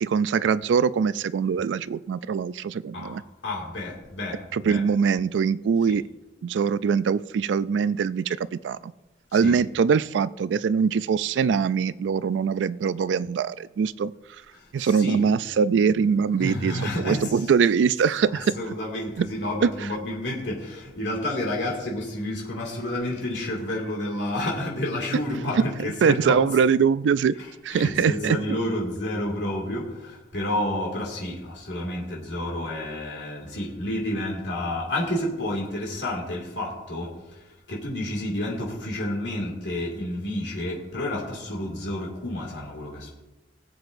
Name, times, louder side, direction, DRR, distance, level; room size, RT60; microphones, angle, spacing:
voice 1, 0.0-3.2 4.5-6.0 6.4-8.9 9.3-14.1 14.7-16.7 17.0-18.5 19.2-19.3 19.6-19.7 25.6-25.7 26.0-27.3 27.6-28.4, right 6 dB, 90° right, 17 dB, 0.3 m, -22 dB
voice 2, 2.9-4.8 9.3-9.6 14.5-15.2 16.4-17.4 18.3-26.4 27.4-37.1 37.7-43.1, left 1 dB, 80° left, -3 dB, 2.3 m, -30 dB
19.0 x 7.8 x 2.6 m, 1.1 s
head